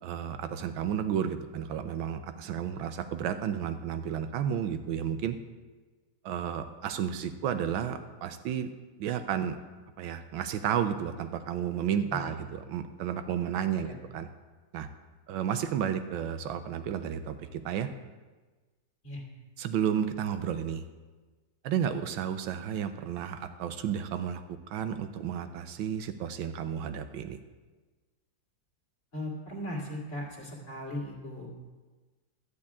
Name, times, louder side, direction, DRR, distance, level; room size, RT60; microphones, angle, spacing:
voice 1, 0.0-5.4 6.2-8.7 9.0-9.6 10.0-13.9 14.1-14.3 14.7-14.9 15.3-17.9 19.6-20.8 21.6-24.4 24.7-27.4, right 9 dB, 80° right, 9 dB, 1.4 m, -32 dB
voice 2, 29.1-31.6, left 1 dB, 35° left, -3 dB, 2.5 m, -38 dB
12.0 x 4.8 x 8.5 m, 1.3 s
omnidirectional pair, 2.2 m